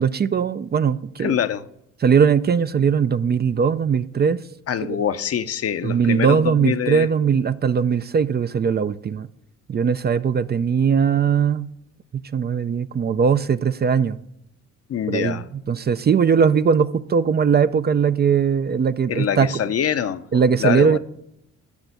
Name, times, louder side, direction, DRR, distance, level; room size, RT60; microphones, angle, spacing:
voice 1, 0.0-1.4 2.0-4.4 4.8-5.0 5.8-9.3 9.7-11.7 12.3-14.2 15.1-15.4 15.7-19.5 20.3-21.0, right 6 dB, 35° right, 0.5 m, -19 dB
voice 2, 1.2-1.6 4.7-7.1 14.9-15.5 19.1-21.0, left 9 dB, 50° left, 0.8 m, -24 dB
12.0 x 6.0 x 8.2 m
cardioid pair, 90°, 30 cm